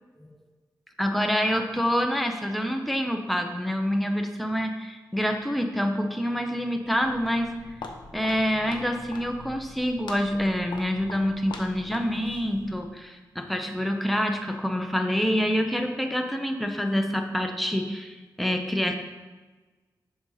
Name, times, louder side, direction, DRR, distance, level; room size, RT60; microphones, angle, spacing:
voice 1, 1.0-7.5 8.1-19.0, equal, ahead, 4 dB, 0.6 m, -27 dB
Walk footsteps, 6.8-12.9, left 3 dB, 90° left, 0.8 m, -43 dB
7.6 x 5.5 x 3.9 m, 1.3 s
wide cardioid pair, 140°, 8 cm